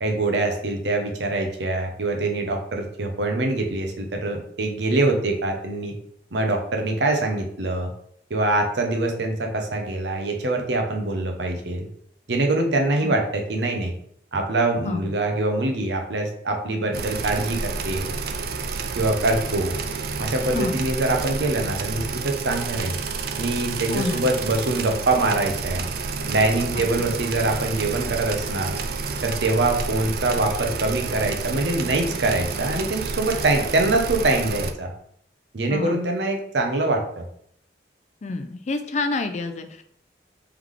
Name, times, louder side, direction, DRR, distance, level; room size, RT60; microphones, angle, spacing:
voice 1, 0.0-5.9 6.3-7.9 8.3-11.9 12.3-13.9 14.3-18.1 19.0-19.8 20.2-23.0 23.4-25.9 26.3-28.8 29.2-34.9 35.5-37.3, right 2 dB, 80° right, 3 dB, 0.8 m, -24 dB
sound 1, 16.9-34.7, right 4 dB, 55° right, 0.4 m, -30 dB
voice 2, 23.9-24.3 26.8-27.1 35.7-36.0 38.2-39.8, left 3 dB, 40° left, 8 dB, 0.4 m, -28 dB
3.5 x 3.2 x 3.7 m, 0.68 s
head